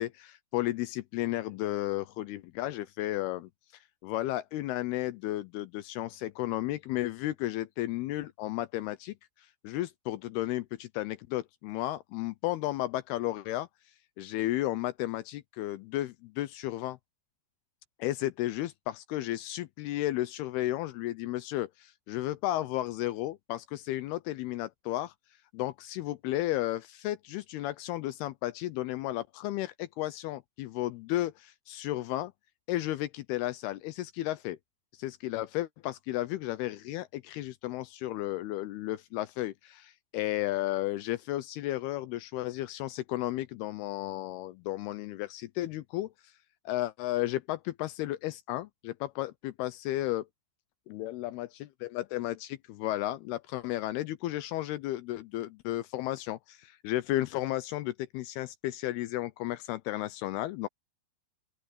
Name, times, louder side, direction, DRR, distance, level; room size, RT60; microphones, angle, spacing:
voice 1, 0.0-3.5 4.0-9.2 9.6-13.7 14.2-17.0 18.0-25.1 25.5-32.3 32.7-34.6 35.0-46.3 46.7-50.3 50.9-51.5 51.9-60.7, left 15 dB, 80° left, 2.3 m, -33 dB
open air
omnidirectional pair, 5.2 m